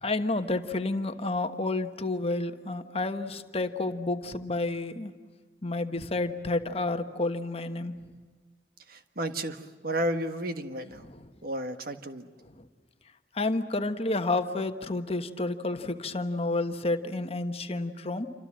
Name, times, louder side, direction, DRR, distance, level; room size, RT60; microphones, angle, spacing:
voice 1, 0.0-5.1 5.6-8.0 13.3-18.3, left 2 dB, 35° left, 8 dB, 1.3 m, -30 dB
voice 2, 8.9-11.1 11.4-12.3, right 1 dB, 55° right, 8 dB, 1.6 m, -32 dB
28.0 x 26.0 x 7.6 m, 1.5 s
head